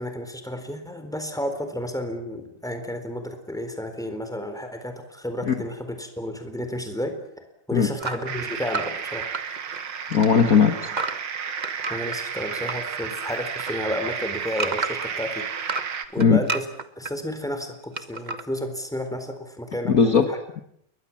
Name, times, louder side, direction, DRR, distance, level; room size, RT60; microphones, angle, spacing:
voice 1, 0.0-7.2 7.7-9.4 11.9-15.5 16.1-16.7 17.0-20.4, equal, ahead, 6 dB, 3.8 m, -32 dB
sound 1, 8.0-9.9 10.1-12.9 13.2-15.2 15.6-17.1 17.9-18.4, right 3 dB, 25° right, 1.1 m, -31 dB
sound 2, 8.3-16.1, right 7 dB, 75° right, 2.5 m, -32 dB
voice 2, 10.1-10.9 16.2-16.4 19.9-20.6, left 6 dB, 45° left, 6 dB, 1.8 m, -18 dB
29.0 x 22.5 x 7.4 m, 0.73 s
omnidirectional pair, 2.3 m